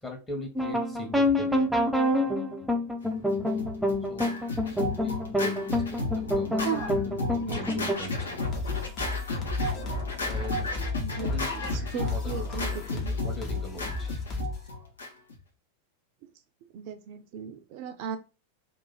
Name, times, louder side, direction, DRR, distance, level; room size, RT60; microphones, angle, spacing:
voice 1, 0.0-1.8 4.1-4.4 4.8-6.8 7.0-7.2 7.4-8.6 10.2-10.7 11.2-11.5 11.8-14.2, left 1 dB, 10° left, 2 dB, 1.2 m, -41 dB
sound 1, 0.6-8.0, left 1 dB, 5° right, 0.6 m, -27 dB
Scratching (performance technique), 3.3-15.4, left 2 dB, 70° left, 0.9 m, -33 dB
voice 2, 6.6-7.9 11.0-13.1 16.2-16.3 16.7-18.2, right 8 dB, 45° right, 7 dB, 0.6 m, -37 dB
sound 2, 8.4-14.7, left 3 dB, 30° left, 1.0 m, -34 dB
2.9 x 2.6 x 4.0 m, 0.30 s
figure-of-eight pair, 90°, 0 cm